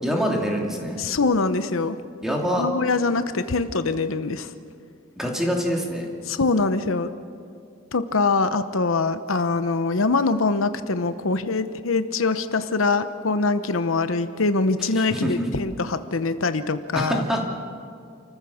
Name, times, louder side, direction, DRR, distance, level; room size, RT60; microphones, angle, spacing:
voice 1, 0.0-1.0 2.2-2.7 5.2-6.1 14.8-15.5 16.9-17.4, equal, ahead, -1 dB, 2.8 m, -25 dB
voice 2, 1.0-2.0 2.6-4.5 6.3-7.1 7.9-17.2, left 3 dB, 85° left, 11 dB, 0.9 m, -23 dB
28.5 x 14.5 x 7.2 m, 2.3 s
head